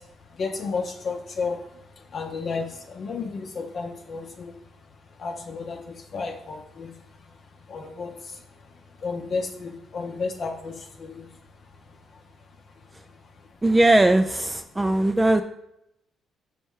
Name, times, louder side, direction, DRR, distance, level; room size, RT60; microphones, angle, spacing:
voice 1, 0.0-4.6 5.2-6.9 7.3-7.4 7.7-11.4 12.1-12.2 13.1-13.3, left 4 dB, 55° left, 3 dB, 0.6 m, -33 dB
voice 2, 13.6-15.4, right 1 dB, 15° right, 7 dB, 0.3 m, -19 dB
5.4 x 4.4 x 4.7 m, 0.83 s
cardioid pair, 90°, 0 cm